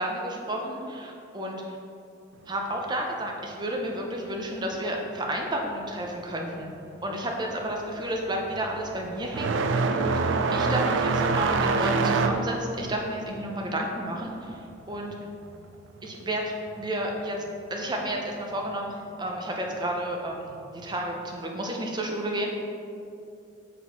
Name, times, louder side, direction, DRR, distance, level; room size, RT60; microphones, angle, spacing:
voice 1, 0.0-1.8 2.5-6.7 7.0-15.1 16.0-17.4 17.7-22.5, right 1 dB, 20° right, 0 dB, 0.6 m, -31 dB
sound 1, 6.8-7.1 7.4-15.7 16.0-17.0 18.0-18.1 18.9-19.0 20.8-20.9, right 4 dB, 75° right, 0.3 m, -26 dB
5.9 x 4.2 x 4.2 m, 2.7 s
head